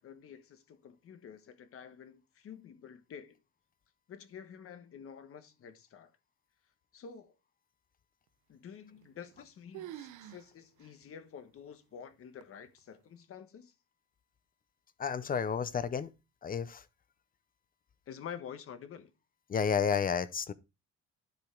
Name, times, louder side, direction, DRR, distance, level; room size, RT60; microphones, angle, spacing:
voice 1, 0.0-3.4 4.1-6.1 6.9-7.3 8.5-13.7 18.1-19.1, left 7 dB, 50° left, 1.3 m, -49 dB
sound 1, 9.0-9.5 9.7-10.5 10.8-10.9 11.6-11.7 12.4-12.8, right 12 dB, 80° right, 0.8 m, -47 dB
voice 2, 15.0-16.1 16.4-16.8 19.5-20.5, left 6 dB, 30° left, 0.6 m, -31 dB
12.0 x 5.1 x 3.7 m
cardioid pair, 155°, 29 cm